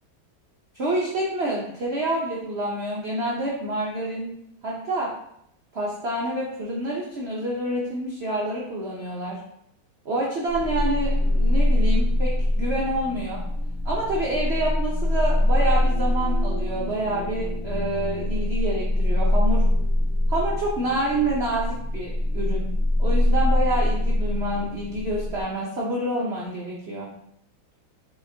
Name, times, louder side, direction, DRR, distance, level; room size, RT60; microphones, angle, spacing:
voice 1, 0.7-4.3 4.6-5.1 5.7-9.4 10.0-13.4 13.8-19.6 20.3-22.7 23.0-27.1, right 1 dB, 80° right, -3 dB, 0.5 m, -27 dB
sound 1, 10.5-25.4, left 1 dB, 65° left, 0.5 m, -23 dB
4.8 x 3.9 x 2.7 m, 0.74 s
omnidirectional pair, 2.2 m